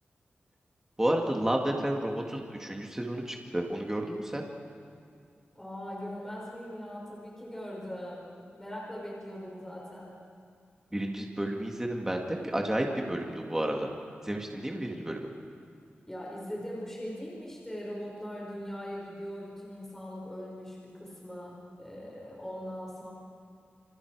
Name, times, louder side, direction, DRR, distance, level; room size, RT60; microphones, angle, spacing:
voice 1, 1.0-4.4 10.9-13.9 14.2-15.3, right 1 dB, 10° right, 1 dB, 2.1 m, -31 dB
voice 2, 5.5-8.3 8.6-10.2 16.1-23.1, equal, 10° left, -4 dB, 5.4 m, -40 dB
28.5 x 27.5 x 4.8 m, 2.3 s
wide cardioid pair, 120°, 4 cm